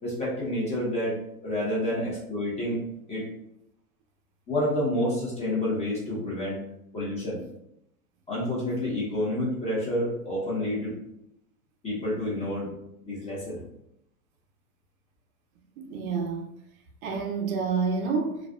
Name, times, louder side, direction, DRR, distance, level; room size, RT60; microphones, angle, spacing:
voice 1, 0.0-2.8 3.1-3.2 4.5-6.6 6.9-7.4 8.3-10.9 11.8-12.7 13.0-13.6, left 1 dB, 15° left, 0.7 m, -29 dB
voice 2, 15.8-16.5 17.0-18.4, right 5 dB, 70° right, 0.6 m, -28 dB
2.4 x 2.2 x 2.3 m
supercardioid pair, 130°, 43 cm